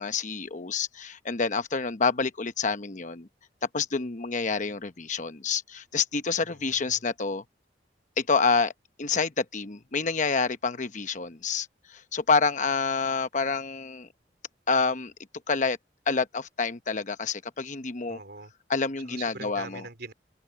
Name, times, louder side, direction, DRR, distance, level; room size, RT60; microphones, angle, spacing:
voice 1, 0.0-3.3 3.7-7.4 8.2-8.7 9.0-14.1 14.7-15.1 15.5-15.8 16.1-18.2 18.7-19.8, left 4 dB, 45° left, 1.0 m, -28 dB
voice 2, 6.4-7.0 18.1-18.5 19.0-20.1, right 3 dB, 65° right, 3.3 m, -43 dB
open air
head